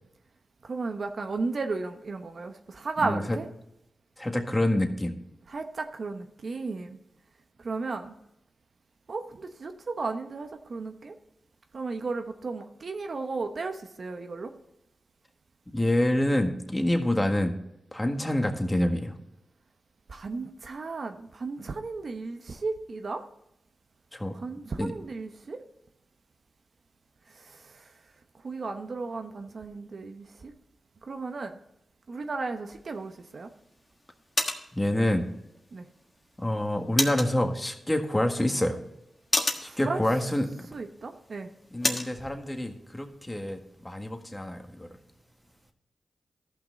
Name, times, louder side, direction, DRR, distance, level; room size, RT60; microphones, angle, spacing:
voice 1, 0.6-3.5 5.5-7.0 7.6-8.1 9.1-11.2 11.7-14.5 20.1-23.2 24.3-25.6 27.3-27.9 28.4-30.5 31.0-31.6 32.1-33.5 35.7-35.9 39.6-40.0 40.7-41.5, right 3 dB, 60° right, 6 dB, 0.9 m, -34 dB
voice 2, 3.0-3.4 4.2-5.2 15.7-17.5 17.9-19.2 24.1-24.4 24.8-24.9 34.7-35.3 36.4-38.8 39.6-40.7 41.7-45.0, left 1 dB, 15° left, 5 dB, 1.7 m, -27 dB
sound 1, 32.7-42.2, left 2 dB, 40° left, 1.5 m, -35 dB
13.5 x 5.9 x 4.0 m, 0.83 s
cardioid pair, 45°, 0 cm